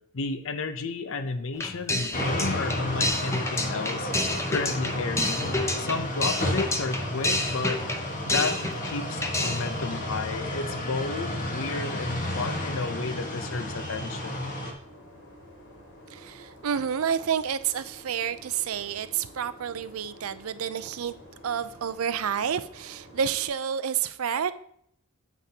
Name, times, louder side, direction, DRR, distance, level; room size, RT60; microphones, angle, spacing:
voice 1, 0.0-4.1 4.5-5.5 5.8-7.8 8.2-14.6, left 3 dB, 65° left, 10 dB, 0.7 m, -32 dB
sound 1, 1.5-9.0 9.2-9.7, left 2 dB, 15° left, 0.7 m, -29 dB
sound 2, 2.1-14.7, left 1 dB, 40° left, 1.5 m, -32 dB
sound 3, 14.8-23.5, equal, 90° left, 3.0 m, -50 dB
voice 2, 16.1-21.1 21.4-24.5, right 8 dB, 75° right, 14 dB, 0.5 m, -29 dB
9.2 x 8.3 x 2.8 m, 0.68 s
head